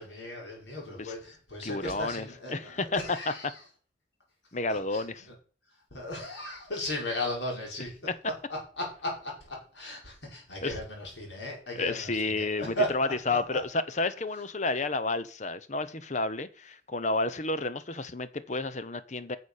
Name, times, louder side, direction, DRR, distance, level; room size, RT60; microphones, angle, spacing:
voice 1, 0.0-3.5 4.7-5.0 5.9-8.0 8.5-13.6, left 1 dB, 80° left, -1 dB, 5.5 m, -36 dB
voice 2, 1.6-3.5 4.5-5.3 8.1-8.2 10.6-10.8 11.7-19.4, left 3 dB, 40° left, 14 dB, 0.9 m, -31 dB
9.7 x 7.0 x 6.6 m, 0.39 s
head